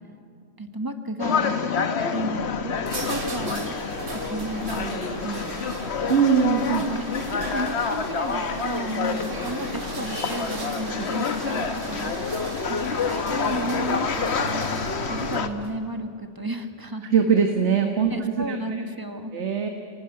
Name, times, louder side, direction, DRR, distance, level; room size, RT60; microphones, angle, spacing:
voice 1, 0.6-3.8 4.1-5.8 6.7-12.1 12.7-17.1 18.1-19.3, right 1 dB, 20° right, 7 dB, 1.3 m, -33 dB
sound 1, 1.2-15.5, left 5 dB, 60° left, 1.3 m, -28 dB
sound 2, 2.2-15.8, right 3 dB, 85° right, 2.3 m, -36 dB
voice 2, 6.1-6.8 11.0-11.1 17.0-18.6 19.3-19.7, right 7 dB, 65° right, 4 dB, 1.7 m, -21 dB
28.0 x 17.5 x 9.7 m, 2.5 s
omnidirectional pair, 1.3 m